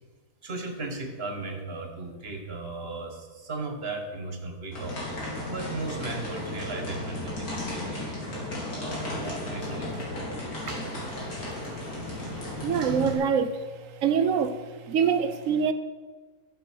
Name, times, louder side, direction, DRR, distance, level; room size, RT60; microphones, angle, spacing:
voice 1, 0.4-5.0 5.5-8.2 8.7-10.0, right 3 dB, 40° right, 1.5 m, -36 dB
sound 1, 4.7-13.1, left 1 dB, 65° left, 3.7 m, -34 dB
voice 2, 12.6-13.6 14.0-14.6 14.9-15.7, right 7 dB, 65° right, 1.0 m, -24 dB
14.0 x 6.5 x 6.1 m
omnidirectional pair, 1.6 m